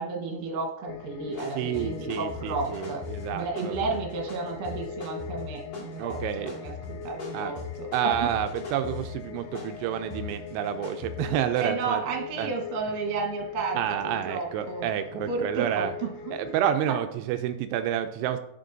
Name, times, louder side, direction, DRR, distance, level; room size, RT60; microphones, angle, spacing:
voice 1, 0.0-3.0 3.3-8.3 11.6-14.9 15.3-16.5, right 4 dB, 65° right, 1 dB, 2.7 m, -32 dB
sound 1, 0.9-16.6, left 9 dB, 85° left, 2.3 m, -41 dB
sound 2, 1.3-11.7, left 4 dB, 45° left, 2.6 m, -40 dB
voice 2, 1.5-3.8 6.0-6.5 7.3-7.5 7.9-12.0 12.4-12.5 13.8-15.9 16.3-18.4, right 10 dB, 85° right, 9 dB, 2.5 m, -29 dB
11.5 x 7.3 x 2.6 m, 0.79 s
omnidirectional pair, 5.1 m